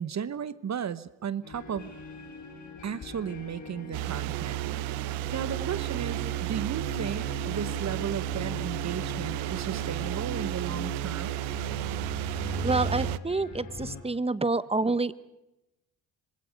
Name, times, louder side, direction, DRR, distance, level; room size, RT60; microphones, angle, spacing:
voice 1, 0.0-1.9 2.8-4.6 5.3-11.4, right 8 dB, 40° right, 16 dB, 1.0 m, -35 dB
sound 1, 1.4-14.0, left 3 dB, 45° left, 6.5 m, -40 dB
sound 2, 3.9-13.2, right 17 dB, 85° right, 0.8 m, -32 dB
voice 2, 12.6-15.2, right 3 dB, 15° right, 16 dB, 1.0 m, -28 dB
26.5 x 23.5 x 5.2 m, 0.93 s
cardioid pair, 80°, 40 cm